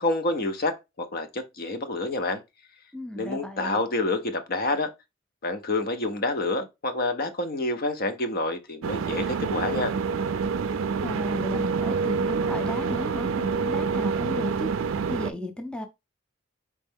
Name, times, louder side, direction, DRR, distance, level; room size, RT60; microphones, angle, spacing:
voice 1, 0.0-2.4 3.2-4.9 5.4-9.9, left 2 dB, 50° left, 0.6 m, -28 dB
voice 2, 2.9-3.8 11.0-14.7 15.1-15.9, left 1 dB, 5° left, 0.5 m, -34 dB
sound 1, 8.8-15.3, right 5 dB, 75° right, 0.4 m, -27 dB
4.3 x 3.1 x 3.5 m
head